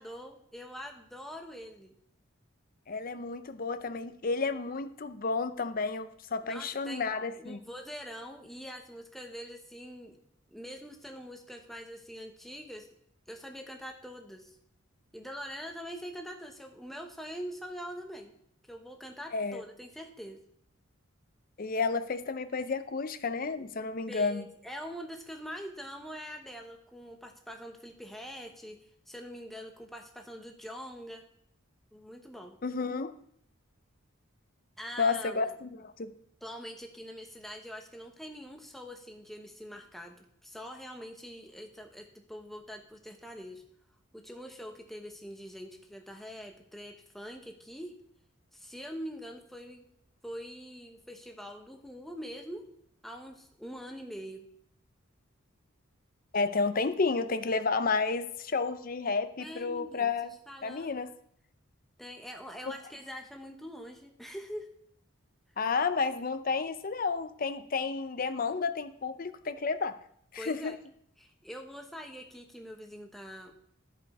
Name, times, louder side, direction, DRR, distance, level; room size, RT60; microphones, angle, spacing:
voice 1, 0.0-1.9 6.4-10.2 10.5-12.9 13.3-14.6 15.1-18.3 18.7-20.4 24.1-31.2 31.9-32.6 34.8-35.5 36.4-43.6 44.1-48.0 48.5-49.8 50.2-52.7 53.0-54.5 59.4-60.1 60.5-60.9 62.0-64.7 70.4-70.8 71.2-73.5, equal, ahead, 3 dB, 0.9 m, -44 dB
voice 2, 2.9-7.6 19.3-19.6 21.6-24.4 32.6-33.1 35.0-36.1 56.3-60.3 60.6-61.1 62.7-62.8 65.6-69.9 70.3-70.7, left 4 dB, 40° left, 10 dB, 0.6 m, -31 dB
13.0 x 5.5 x 4.2 m, 0.69 s
head